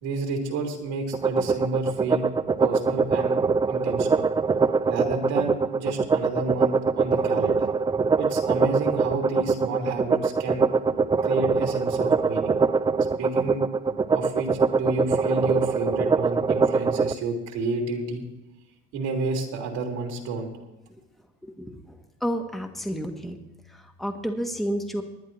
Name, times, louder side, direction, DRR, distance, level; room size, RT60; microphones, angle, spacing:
voice 1, 0.0-2.2 2.6-3.4 3.7-4.3 4.9-7.7 8.2-10.7 11.2-12.6 13.2-13.6 14.1-18.2 18.9-20.5, right 3 dB, 80° right, 1 dB, 2.8 m, -30 dB
sound 1, 1.1-17.1, right 4 dB, 15° right, 0.4 m, -23 dB
voice 2, 21.4-23.4 23.7-25.0, equal, ahead, 4 dB, 1.2 m, -31 dB
19.5 x 10.5 x 3.0 m, 1.0 s
cardioid pair, 105°, 29 cm